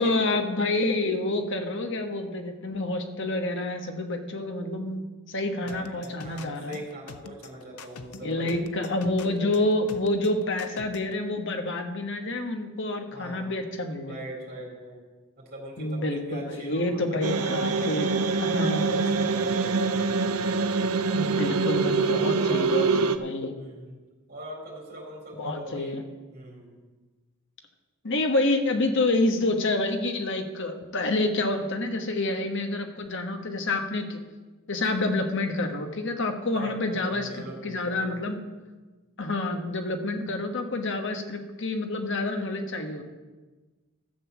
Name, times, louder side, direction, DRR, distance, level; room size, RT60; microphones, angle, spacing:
voice 1, 0.0-6.8 8.2-14.2 15.8-18.1 18.4-19.3 21.1-23.5 25.4-26.0 28.0-34.2 34.7-38.4 39.2-43.0, left 2 dB, 55° left, 5 dB, 1.3 m, -28 dB
voice 2, 5.5-8.5 13.1-13.5 14.0-15.0 15.5-19.9 22.0-22.9 23.6-23.9 24.3-26.0 26.3-26.8 36.5-38.2, right 1 dB, 40° right, -2 dB, 4.0 m, -41 dB
sound 1, 5.7-11.1, left 5 dB, 85° left, 0.7 m, -44 dB
sound 2, 17.2-23.2, right 4 dB, 75° right, 0.6 m, -25 dB
13.0 x 7.0 x 7.1 m, 1.3 s
head